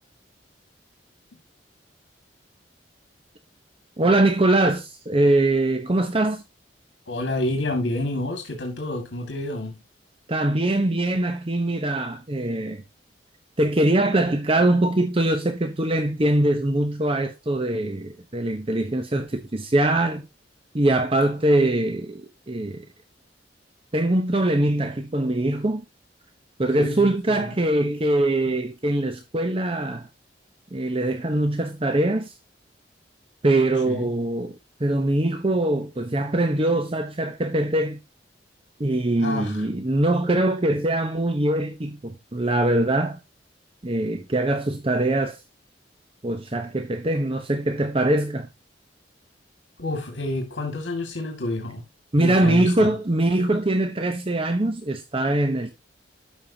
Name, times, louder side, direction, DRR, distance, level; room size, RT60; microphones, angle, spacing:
voice 1, 4.0-6.4 10.3-12.8 13.6-20.2 20.7-22.9 23.9-25.8 26.6-30.1 30.7-32.3 33.4-34.5 34.8-38.0 38.8-43.2 43.8-45.4 46.2-48.5 52.1-55.7, right 1 dB, 30° right, 0.8 m, -22 dB
voice 2, 7.1-9.8 26.7-27.6 28.4-28.5 33.9-34.1 39.2-39.7 49.8-51.8 52.2-52.9, left 1 dB, 90° left, 2.1 m, -29 dB
12.5 x 5.5 x 2.8 m
head